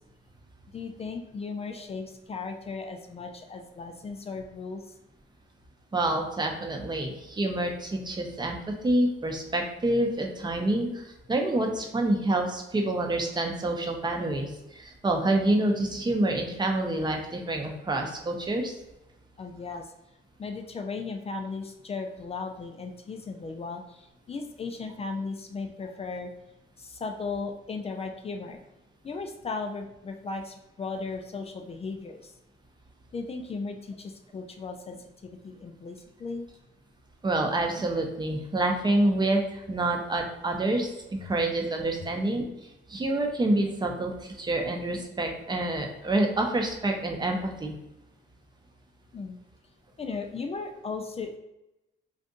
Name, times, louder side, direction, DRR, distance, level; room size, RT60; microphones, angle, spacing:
voice 1, 0.7-5.0 19.4-19.9 20.4-26.3 26.8-28.6 29.0-32.3 33.1-36.5 42.0-42.1 49.1-49.4 50.0-51.4, left 4 dB, 30° left, 4 dB, 0.4 m, -36 dB
voice 2, 5.9-8.6 8.8-18.7 37.2-42.4 42.9-47.7, right 1 dB, 20° right, 2 dB, 0.7 m, -27 dB
2.6 x 2.5 x 3.6 m, 0.92 s
cardioid pair, 90°, 20 cm